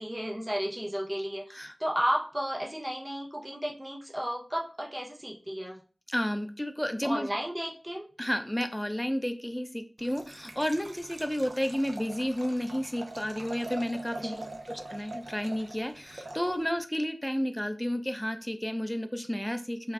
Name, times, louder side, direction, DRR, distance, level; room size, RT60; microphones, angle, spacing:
voice 1, 0.0-5.8 7.0-8.1 14.2-14.6, equal, 25° right, 0 dB, 0.7 m, -33 dB
voice 2, 6.1-7.3 8.2-14.4 14.7-19.9, equal, 10° left, 8 dB, 0.3 m, -31 dB
Liquid, 10.0-16.8, right 2 dB, 90° right, 0.3 m, -44 dB
3.4 x 2.0 x 2.2 m, 0.37 s
wide cardioid pair, 45°, 0 cm